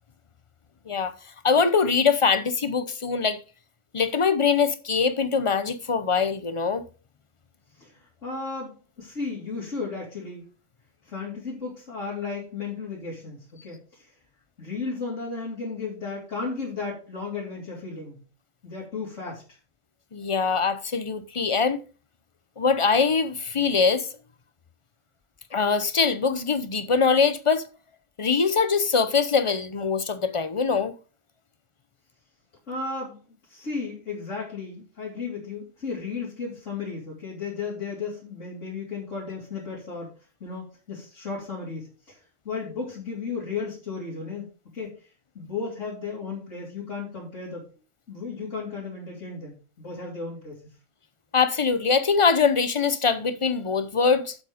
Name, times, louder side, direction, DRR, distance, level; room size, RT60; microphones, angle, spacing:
voice 1, 1.4-3.4 3.9-6.8 20.1-21.8 22.6-24.1 25.5-27.6 28.2-30.9 51.3-54.4, left 5 dB, 30° left, 0.7 m, -23 dB
voice 2, 7.8-8.7 9.0-10.4 11.0-14.1 14.6-18.2 18.6-19.6 32.7-33.2 33.5-40.1 40.4-44.4 44.7-45.1 45.3-47.6 48.1-50.7, left 4 dB, 70° left, 3.5 m, -34 dB
8.4 x 7.4 x 5.1 m
omnidirectional pair, 1.3 m